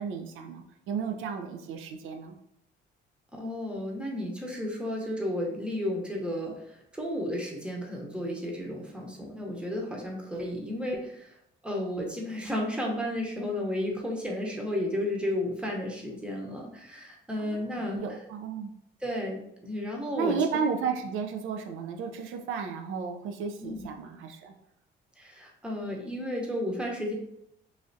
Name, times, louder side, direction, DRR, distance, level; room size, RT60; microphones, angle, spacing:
voice 1, 0.0-2.4 17.4-18.7 20.1-24.5, right 6 dB, 85° right, 4 dB, 0.4 m, -33 dB
voice 2, 3.3-11.4 11.6-18.0 19.0-20.4 23.6-23.9 25.2-27.1, left 1 dB, 5° right, -1 dB, 0.8 m, -33 dB
3.2 x 2.4 x 2.6 m, 0.77 s
cardioid pair, 90°, 20 cm